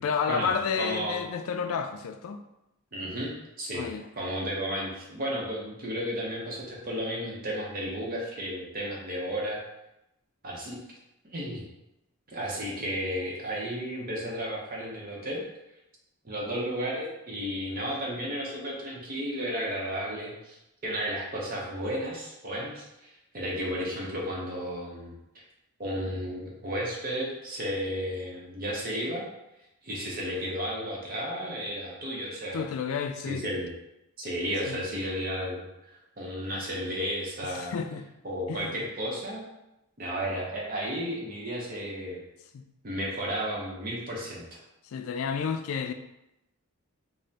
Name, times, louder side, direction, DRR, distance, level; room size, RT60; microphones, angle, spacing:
voice 1, 0.0-2.4 3.7-4.1 32.5-33.4 34.7-34.8 37.4-38.0 38.5-38.7 42.5-42.6 44.8-45.9, left 6 dB, 70° left, 8 dB, 0.3 m, -31 dB
voice 2, 0.8-1.2 2.9-3.3 3.6-3.9 4.2-9.6 10.4-10.8 11.2-11.6 12.3-15.4 16.2-20.6 20.8-25.1 25.8-29.2 29.8-32.6 33.3-33.7 34.2-37.7 38.2-39.4 40.0-42.2 42.8-44.6, equal, 40° right, -3 dB, 0.7 m, -33 dB
5.2 x 2.1 x 2.7 m, 0.89 s
head